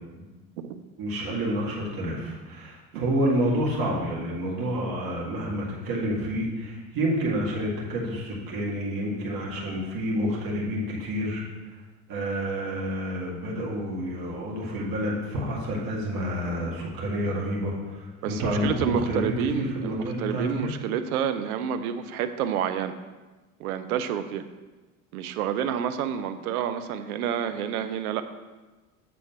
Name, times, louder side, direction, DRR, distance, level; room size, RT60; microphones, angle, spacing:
voice 1, 1.0-11.4 12.1-20.7, equal, 50° right, -3 dB, 2.1 m, -29 dB
voice 2, 18.2-22.9 23.6-24.5 25.1-28.2, right 8 dB, 80° right, 9 dB, 0.6 m, -29 dB
7.6 x 3.8 x 5.8 m, 1.2 s
hypercardioid pair, 70°, 43 cm